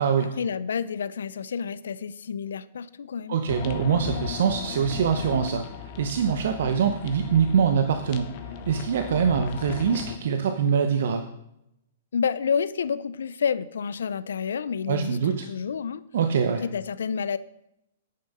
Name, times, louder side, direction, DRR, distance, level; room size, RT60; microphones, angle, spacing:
voice 1, 0.0-3.4 12.1-16.0 16.6-17.4, left 6 dB, 80° left, 17 dB, 0.5 m, -29 dB
voice 2, 3.3-5.6 6.0-11.3 14.9-15.5 16.1-16.6, right 7 dB, 70° right, 7 dB, 0.9 m, -24 dB
sound 1, 3.5-10.2, left 8 dB, 45° left, 1.1 m, -37 dB
9.5 x 7.0 x 5.5 m, 0.81 s
hypercardioid pair, 125°, 0 cm